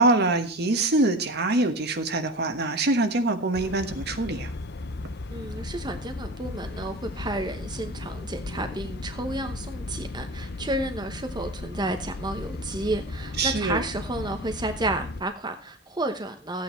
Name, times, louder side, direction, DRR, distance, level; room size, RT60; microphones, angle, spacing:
voice 1, 0.0-4.5 13.4-13.8, right 2 dB, 55° right, 8 dB, 1.4 m, -24 dB
sound 1, 3.5-15.2, left 2 dB, 60° left, 0.7 m, -36 dB
voice 2, 5.3-16.6, right 2 dB, 25° right, 6 dB, 1.0 m, -31 dB
14.5 x 8.8 x 4.4 m, 0.38 s
head